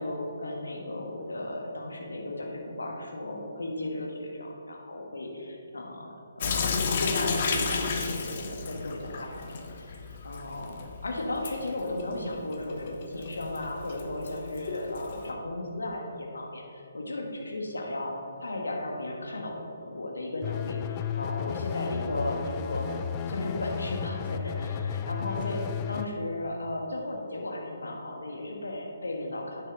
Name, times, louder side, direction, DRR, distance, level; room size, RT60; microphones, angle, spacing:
voice 1, 0.0-22.9 23.3-29.7, left 1 dB, 75° left, 0 dB, 1.4 m, -35 dB
Sink (filling or washing) / Drip, 6.4-15.3, left 5 dB, 45° left, 0.8 m, -33 dB
sound 1, 20.4-26.1, left 8 dB, 25° left, 0.3 m, -33 dB
9.3 x 6.3 x 3.7 m, 2.6 s
figure-of-eight pair, 135°, 0 cm